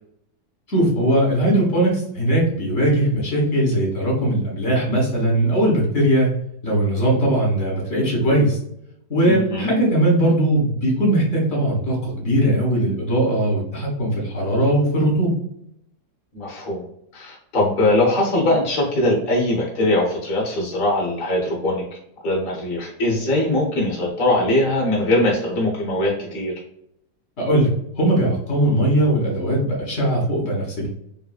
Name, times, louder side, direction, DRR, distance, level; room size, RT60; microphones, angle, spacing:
voice 1, 0.7-6.3 6.6-8.6 9.1-15.3 27.4-27.7 28.0-30.9, right 1 dB, 45° left, -2 dB, 1.2 m, -19 dB
voice 2, 9.2-9.7 16.3-16.8 17.1-21.8 22.2-26.5, left 1 dB, 60° left, -3 dB, 0.5 m, -21 dB
3.1 x 2.5 x 2.3 m, 0.75 s
omnidirectional pair, 2.0 m